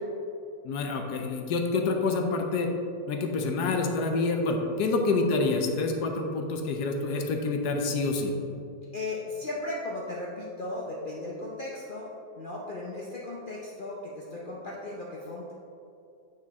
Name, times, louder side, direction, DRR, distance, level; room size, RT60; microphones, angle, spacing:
voice 1, 0.6-2.7 3.1-8.3, left 3 dB, 70° left, 3 dB, 1.2 m, -27 dB
voice 2, 8.9-12.1 12.4-15.5, left 2 dB, 90° left, -4 dB, 0.4 m, -36 dB
8.5 x 4.5 x 3.5 m, 2.6 s
omnidirectional pair, 1.9 m